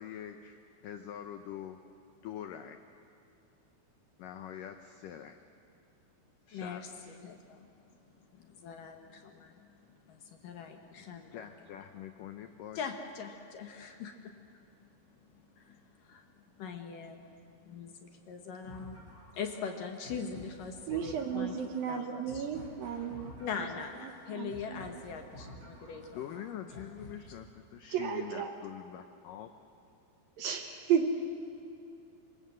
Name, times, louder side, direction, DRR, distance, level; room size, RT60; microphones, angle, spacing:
voice 1, 0.0-1.8 2.2-2.8 4.2-5.4 6.5-7.2 11.0-12.8 26.1-29.5, left 10 dB, 80° left, 7 dB, 1.9 m, -44 dB
voice 2, 6.5-11.5 12.8-14.6 14.9-19.0 19.3-21.5 21.9-22.5 23.4-26.4 26.7-27.4, left 6 dB, 65° left, 4 dB, 2.4 m, -43 dB
sound 1, 18.6-27.6, equal, 25° left, 6.4 m, -51 dB
voice 3, 20.9-23.4 24.0-24.8 27.9-28.5 30.4-31.1, right 8 dB, 70° right, 5 dB, 2.5 m, -33 dB
27.0 x 24.0 x 7.7 m, 2.7 s
omnidirectional pair, 5.0 m